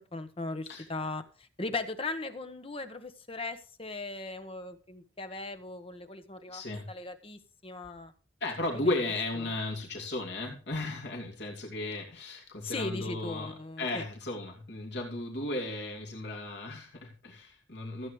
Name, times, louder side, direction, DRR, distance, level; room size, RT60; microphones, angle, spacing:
voice 1, 0.1-6.6 6.9-8.1 12.6-14.0, left 3 dB, 30° left, 8 dB, 1.2 m, -38 dB
voice 2, 6.5-6.9 8.4-18.1, left 2 dB, 65° left, 0 dB, 2.8 m, -35 dB
15.5 x 8.7 x 3.3 m, 0.38 s
head